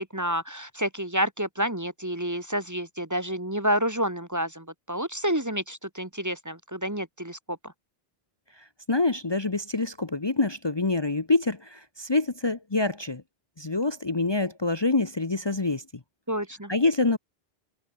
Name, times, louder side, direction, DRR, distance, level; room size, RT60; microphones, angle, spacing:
voice 1, 0.0-7.7 16.3-16.7, equal, 15° right, 1.4 m, -29 dB
voice 2, 8.9-13.2 13.6-15.8 16.7-17.2, left 3 dB, 25° left, 1.0 m, -26 dB
omnidirectional pair, 1.0 m